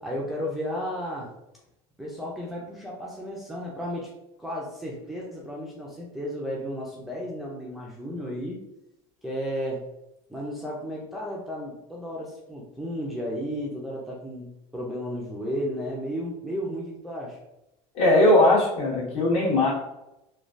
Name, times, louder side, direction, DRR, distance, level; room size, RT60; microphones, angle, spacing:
voice 1, 0.0-1.3 2.0-4.1 4.4-8.6 9.2-9.8 10.3-14.5 14.7-17.4, equal, ahead, -4 dB, 0.4 m, -33 dB
voice 2, 17.9-19.7, left 1 dB, 55° left, -4 dB, 1.3 m, -19 dB
3.1 x 2.3 x 2.5 m, 0.89 s
cardioid pair, 155°, 12 cm